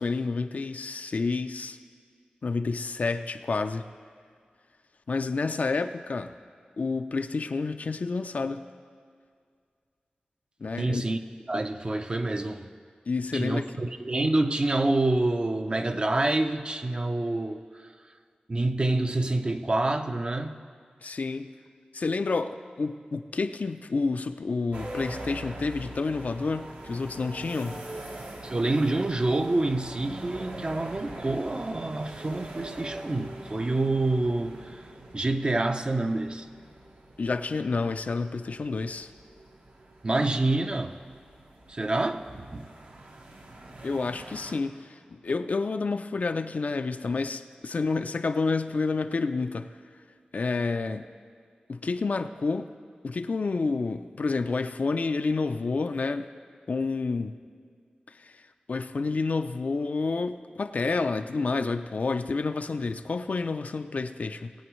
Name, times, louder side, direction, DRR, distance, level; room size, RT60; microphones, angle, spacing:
voice 1, 0.0-1.8 2.4-3.9 5.1-6.3 6.8-8.6 10.6-11.0 13.1-13.7 21.0-21.5 21.9-27.8 37.2-39.1 43.8-49.7 50.3-51.1 51.7-52.7 53.0-56.3 56.7-57.4 58.1-64.5, left 4 dB, 60° left, 0.5 m, -29 dB
voice 2, 10.8-11.2 11.5-12.7 13.3-17.6 18.5-20.6 28.4-34.8 35.1-36.5 40.0-41.0 41.7-42.7, right 2 dB, 35° right, 0.6 m, -27 dB
sound 1, 24.7-44.6, right 1 dB, 70° right, 1.1 m, -43 dB
20.0 x 8.7 x 3.1 m
wide cardioid pair, 90°, 3 cm